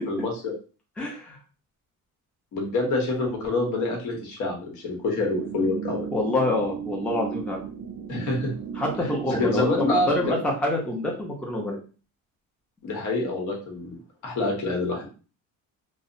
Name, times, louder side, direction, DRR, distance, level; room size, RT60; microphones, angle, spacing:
voice 1, 0.1-0.5 2.5-6.1 8.1-8.5 9.0-10.4 12.8-14.0 14.2-15.1, left 2 dB, 65° left, 0 dB, 1.0 m, -27 dB
voice 2, 1.0-1.4 6.1-7.7 8.8-11.8, left 1 dB, 5° left, -1 dB, 0.5 m, -26 dB
sound 1, 5.3-10.3, right 7 dB, 75° right, 0.5 m, -35 dB
2.7 x 2.1 x 2.5 m, 0.36 s
cardioid pair, 135°, 34 cm